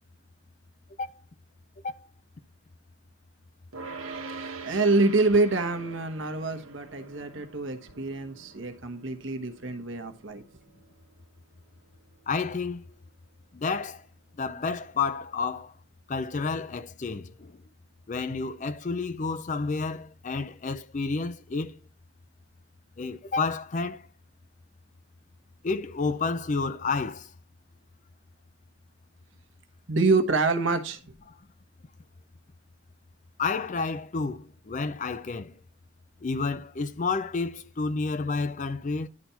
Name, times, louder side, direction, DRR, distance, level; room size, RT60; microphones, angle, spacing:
sound 1, 3.7-15.0, right 4 dB, 80° right, 1.4 m, -45 dB
voice 1, 4.3-10.4 29.9-31.0, right 3 dB, 60° right, 1.2 m, -26 dB
voice 2, 12.3-12.9 13.5-14.0 14.4-15.7 16.1-17.6 18.1-21.8 23.0-24.1 25.6-27.3 33.4-35.5 36.2-39.1, left 4 dB, 35° left, 0.4 m, -30 dB
11.0 x 4.3 x 5.7 m
head